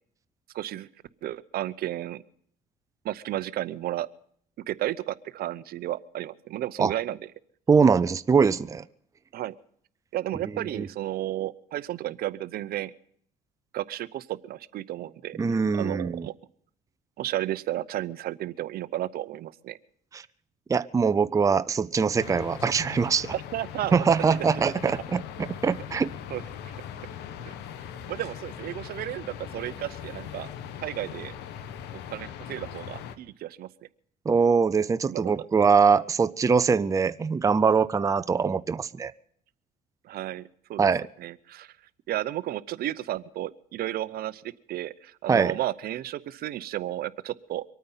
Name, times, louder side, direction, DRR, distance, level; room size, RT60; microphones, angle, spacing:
voice 1, 0.5-0.9 1.2-2.2 3.0-4.1 4.7-7.2 9.3-9.5 10.1-12.9 13.7-15.4 15.7-16.3 17.2-19.8 23.3-24.7 26.3-26.8 27.4-27.5 28.1-30.5 30.8-31.3 31.9-33.7 35.1-35.3 40.0-40.4 40.7-40.9 41.2-41.7 42.1-44.4 44.7-47.6, right 13 dB, 65° right, 0.7 m, -33 dB
voice 2, 7.7-8.9 10.7-10.9 15.4-16.3 20.1-20.2 20.7-23.3 23.9-26.1 34.3-39.1 40.8-41.1 45.3-45.5, right 5 dB, 20° right, 0.5 m, -23 dB
sound 1, 22.2-33.2, left 9 dB, 85° left, 1.2 m, -40 dB
24.0 x 9.3 x 5.7 m
cardioid pair, 110°, 17 cm